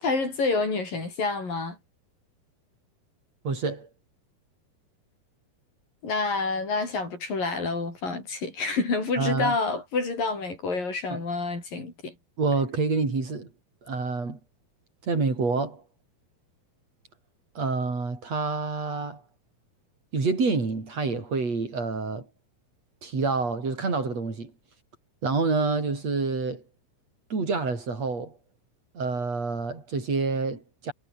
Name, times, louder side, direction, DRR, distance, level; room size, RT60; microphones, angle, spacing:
voice 1, 0.0-1.8 6.0-12.1, left 3 dB, 65° left, 9.2 m, -28 dB
voice 2, 3.4-3.9 9.2-9.6 11.1-11.2 12.4-13.5 13.9-14.4 15.0-15.8 17.5-19.2 20.1-22.3 23.0-24.5 25.2-26.6 27.3-28.3 28.9-30.9, right 4 dB, 45° right, 6.8 m, -27 dB
omnidirectional pair, 4.3 m